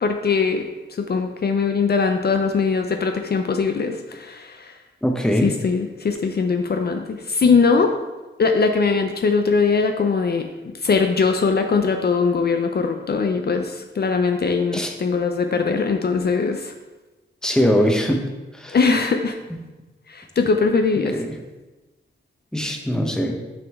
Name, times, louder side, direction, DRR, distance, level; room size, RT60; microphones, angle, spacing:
voice 1, 0.0-4.8 5.4-7.9 8.4-16.7 18.7-19.4 20.1-21.2, left 4 dB, 50° left, 5 dB, 0.5 m, -21 dB
voice 2, 5.0-5.5 14.7-14.9 17.4-18.2 18.5-18.8 22.5-23.4, equal, 5° left, 2 dB, 0.8 m, -21 dB
6.2 x 5.1 x 3.5 m, 1.1 s
wide cardioid pair, 80°, 20 cm